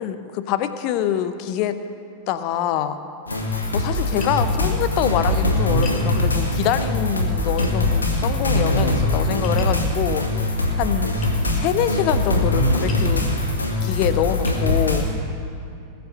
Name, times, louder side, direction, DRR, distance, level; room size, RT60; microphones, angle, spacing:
voice 1, 0.0-1.8 2.3-3.0 3.7-10.3 10.8-11.2 11.5-13.2 13.8-15.1, left 10 dB, 45° left, 11 dB, 0.7 m, -25 dB
sound 1, 3.3-15.0, left 1 dB, 75° left, 1.7 m, -22 dB
Tap, 4.2-4.4 5.8-6.1 7.6-7.7 9.4-9.8 11.2-11.4 12.9-13.1 13.8-13.9 14.5-14.6, left 4 dB, 30° left, 1.7 m, -38 dB
20.0 x 6.8 x 6.5 m, 2.6 s
figure-of-eight pair, 90°, 0 cm